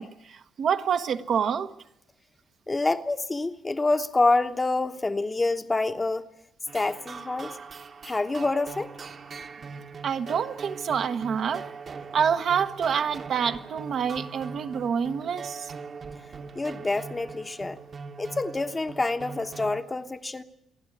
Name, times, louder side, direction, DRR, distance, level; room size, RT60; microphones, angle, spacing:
voice 1, 0.0-1.7 10.0-11.7 12.1-15.7, right 7 dB, 60° right, 1.2 m, -27 dB
voice 2, 2.7-6.3 6.7-7.6 8.0-8.9 16.5-17.8 18.2-20.4, left 2 dB, 20° left, 1.1 m, -27 dB
sound 1, 6.7-19.8, right 5 dB, 45° right, 1.4 m, -41 dB
28.0 x 11.0 x 9.9 m
cardioid pair, 90°, 0 cm